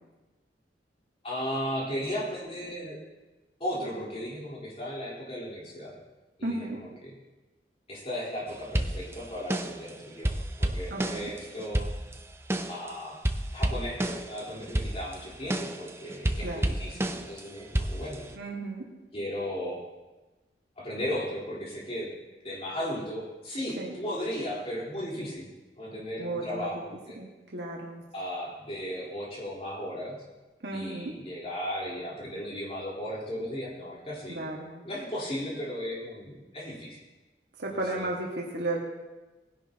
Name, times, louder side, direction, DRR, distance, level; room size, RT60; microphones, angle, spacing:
voice 1, 1.2-3.0 3.6-5.9 6.4-7.1 7.9-11.9 12.7-13.2 13.5-18.3 19.1-19.8 20.8-22.1 22.4-25.5 25.8-27.2 28.1-30.2 30.7-34.5 34.8-37.0 37.7-38.1, equal, 35° left, -6 dB, 4.0 m, -36 dB
voice 2, 6.4-6.8 10.9-11.3 16.4-16.8 18.3-18.9 23.8-24.0 26.2-26.7 27.2-28.0 30.6-31.1 34.3-34.8 37.6-38.8, right 2 dB, 75° right, -2 dB, 1.8 m, -34 dB
sound 1, 8.7-9.9 10.2-12.9 13.2-14.4 14.7-17.4 17.7-18.3, right 1 dB, 15° right, 0.5 m, -30 dB
19.5 x 10.5 x 3.0 m, 1.1 s
head